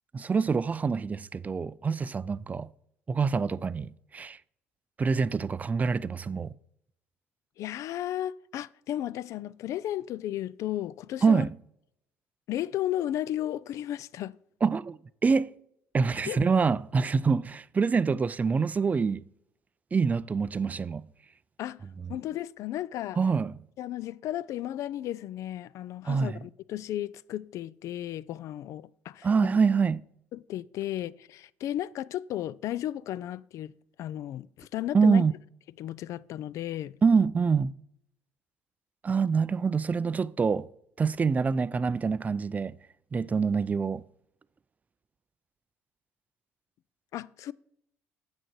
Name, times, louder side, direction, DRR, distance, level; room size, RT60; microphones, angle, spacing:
voice 1, 0.1-2.7 3.1-4.4 5.0-6.5 11.2-11.6 14.6-15.5 15.9-19.2 19.9-21.1 23.2-23.6 26.0-26.4 29.2-30.0 34.9-35.3 37.0-37.7 39.0-40.7 41.0-42.8 43.1-44.0, right 5 dB, 25° right, 0.4 m, -25 dB
voice 2, 7.6-11.5 12.5-14.3 16.3-16.4 21.6-21.8 22.1-23.2 23.8-29.5 30.3-33.7 34.0-35.2 35.8-37.0 47.1-47.5, left 12 dB, 60° left, 0.3 m, -34 dB
8.1 x 6.3 x 4.5 m
supercardioid pair, 70°, 6 cm